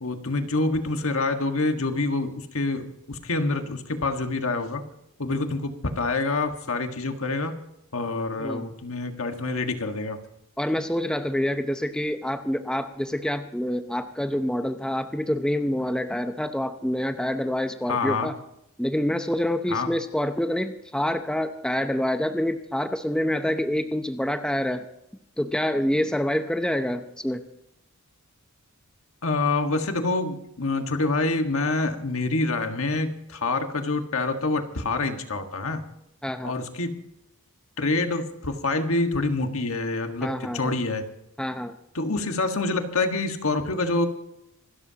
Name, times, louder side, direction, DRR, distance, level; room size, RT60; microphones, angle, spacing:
voice 1, 0.0-4.8 5.2-7.6 7.9-10.2 17.9-18.3 19.7-19.9 29.2-35.8 36.4-37.0 37.8-41.0 41.9-44.1, left 3 dB, 65° left, 6 dB, 1.7 m, -26 dB
voice 2, 10.6-18.4 18.8-24.8 25.4-27.4 36.2-36.5 40.2-40.7 41.4-41.7, left 1 dB, 5° left, 7 dB, 0.7 m, -27 dB
26.5 x 13.0 x 2.9 m, 0.81 s
head